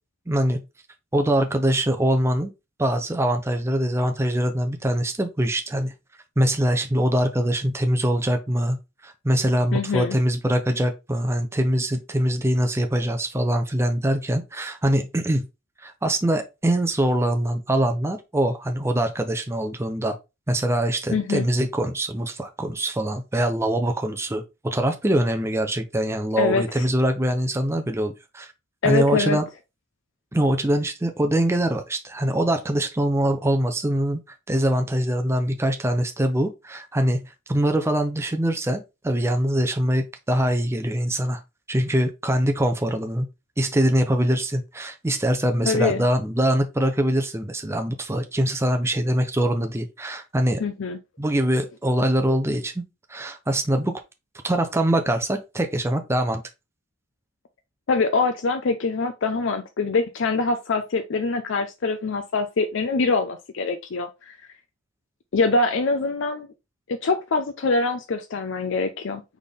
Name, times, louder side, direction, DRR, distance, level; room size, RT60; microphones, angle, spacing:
voice 1, 0.3-0.6 1.1-2.5 2.8-5.9 6.4-8.8 9.0-15.5 15.8-20.2 20.5-28.5 28.8-29.4 30.3-41.4 41.7-43.3 43.6-50.6 51.2-52.8 53.1-53.9 54.4-56.4, right 1 dB, 15° right, 0.5 m, -23 dB
voice 2, 9.7-10.2 21.1-21.5 26.4-26.9 28.8-29.4 45.7-46.0 50.6-51.0 57.9-64.4 65.3-66.5 66.9-69.2, left 3 dB, 65° left, 0.5 m, -24 dB
4.2 x 3.5 x 3.5 m
head